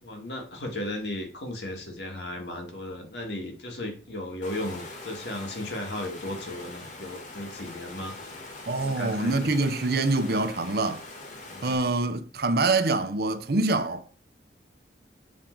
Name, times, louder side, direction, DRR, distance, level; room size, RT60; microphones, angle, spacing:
voice 1, 0.0-8.3 8.7-9.5 11.5-11.8, left 1 dB, 75° left, 1.9 m, -35 dB
Water, 4.4-11.7, left 2 dB, 45° left, 1.4 m, -43 dB
voice 2, 8.7-11.1 11.6-14.0, right 3 dB, 60° right, 0.7 m, -25 dB
7.4 x 3.8 x 4.5 m
head